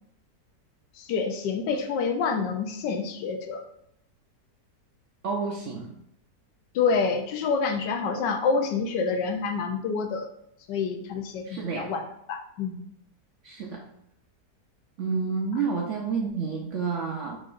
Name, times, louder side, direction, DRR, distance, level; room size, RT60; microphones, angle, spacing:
voice 1, 0.9-3.6 6.7-10.3 10.7-12.0 12.3-12.8, left 5 dB, 85° left, 5 dB, 1.3 m, -27 dB
voice 2, 5.2-5.9 11.5-11.9 13.4-13.9 15.0-17.4, right 5 dB, 70° right, -1 dB, 0.7 m, -29 dB
5.1 x 3.7 x 2.5 m, 0.75 s
omnidirectional pair, 1.8 m